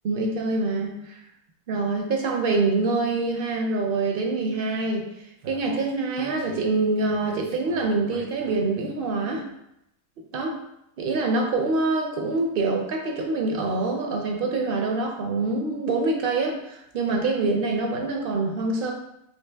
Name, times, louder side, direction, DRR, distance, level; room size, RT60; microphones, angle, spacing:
voice 1, 0.0-1.2 1.7-5.1 5.5-9.4 10.3-10.6 11.0-18.9, right 3 dB, 65° right, 2 dB, 0.5 m, -25 dB
Speech, 5.4-8.8, right 2 dB, 85° right, 1.1 m, -44 dB
3.3 x 2.7 x 3.3 m, 0.81 s
omnidirectional pair, 1.4 m